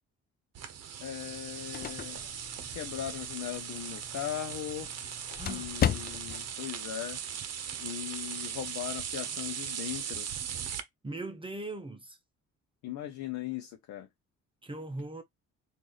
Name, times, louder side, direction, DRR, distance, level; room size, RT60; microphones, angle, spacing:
sound 1, 0.5-10.8, right 8 dB, 55° right, 0.8 m, -39 dB
voice 1, 1.0-2.2 2.7-4.9 5.5-7.2 7.8-10.3 12.8-14.1, left 11 dB, 70° left, 0.7 m, -38 dB
sound 2, 1.3-6.5, left 9 dB, 35° left, 0.4 m, -36 dB
voice 2, 5.4-5.7 11.0-12.2 14.6-15.2, right 2 dB, 15° right, 0.7 m, -39 dB
3.2 x 2.6 x 3.9 m
cardioid pair, 90°, 30 cm